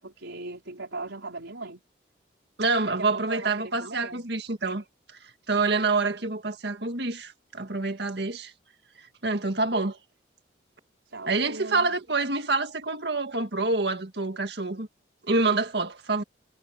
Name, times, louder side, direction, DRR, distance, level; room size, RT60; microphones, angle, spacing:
voice 1, 0.0-1.8 2.8-4.3 11.1-11.9, right 2 dB, 85° right, 4.9 m, -39 dB
voice 2, 2.6-4.8 5.5-8.5 9.2-10.0 11.3-14.9 15.3-16.2, right 3 dB, 65° right, 1.9 m, -27 dB
head